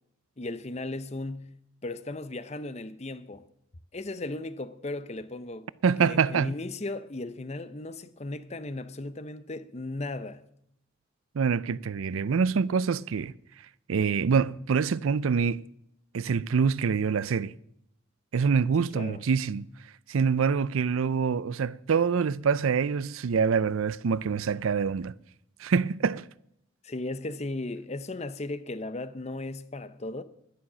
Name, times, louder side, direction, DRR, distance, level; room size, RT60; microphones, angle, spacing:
voice 1, 0.4-3.4 3.9-5.7 6.0-10.4 18.9-19.2 26.8-30.2, left 2 dB, 30° left, 0.6 m, -36 dB
voice 2, 5.8-6.5 11.3-13.3 13.9-15.6 16.1-17.5 18.3-19.7 20.1-25.1 25.6-26.3, right 6 dB, 80° right, 0.4 m, -25 dB
11.5 x 11.0 x 6.1 m
head